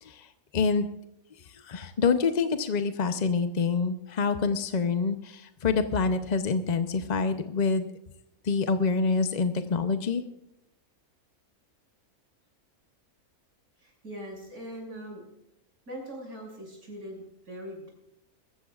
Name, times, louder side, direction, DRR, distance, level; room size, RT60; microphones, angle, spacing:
voice 1, 0.0-0.9 1.3-7.9 8.4-10.2, left 4 dB, 40° left, 8 dB, 0.6 m, -27 dB
voice 2, 13.8-15.2 15.9-17.9, equal, 90° right, -1 dB, 6.8 m, -41 dB
22.0 x 15.0 x 2.4 m, 0.86 s
omnidirectional pair, 1.6 m